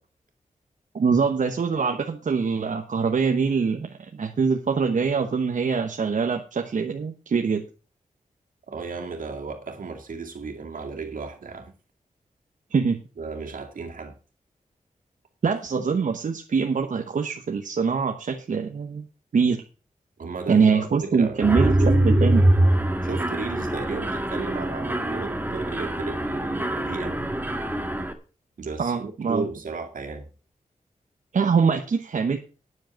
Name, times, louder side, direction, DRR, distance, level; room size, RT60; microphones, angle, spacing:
voice 1, 0.9-3.9 4.1-7.6 12.7-13.0 15.4-19.1 19.3-19.6 20.5-21.7 22.0-22.4 28.8-29.4 31.3-32.4, right 5 dB, 65° right, 1.1 m, -23 dB
voice 2, 8.7-11.7 13.2-14.1 20.2-22.5 23.0-27.2 28.6-30.3, right 4 dB, 85° right, 2.4 m, -35 dB
Mechanisms, 21.4-28.1, right 1 dB, 15° right, 1.5 m, -23 dB
9.8 x 7.8 x 6.3 m
wide cardioid pair, 105°, 14 cm